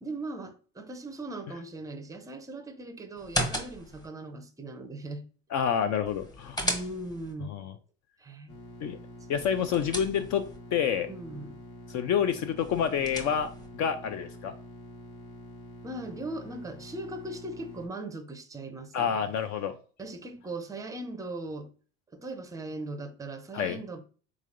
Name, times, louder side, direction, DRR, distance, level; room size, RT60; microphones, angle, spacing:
voice 1, 0.0-5.2 6.6-7.6 8.2-8.5 11.1-11.6 15.8-19.2 20.0-21.7 22.1-24.0, right 2 dB, 10° right, 0.5 m, -39 dB
sound 1, 3.2-4.1 6.1-7.3 9.3-10.6 12.6-13.7, equal, 10° left, 0.8 m, -35 dB
voice 2, 5.5-6.6 7.4-7.7 8.8-9.0 9.3-11.1 11.9-14.5 18.9-19.8 23.5-23.8, left 8 dB, 50° left, 0.4 m, -28 dB
sound 2, 8.5-17.9, equal, 65° left, 1.5 m, -47 dB
3.7 x 3.1 x 2.5 m
supercardioid pair, 90°, 38 cm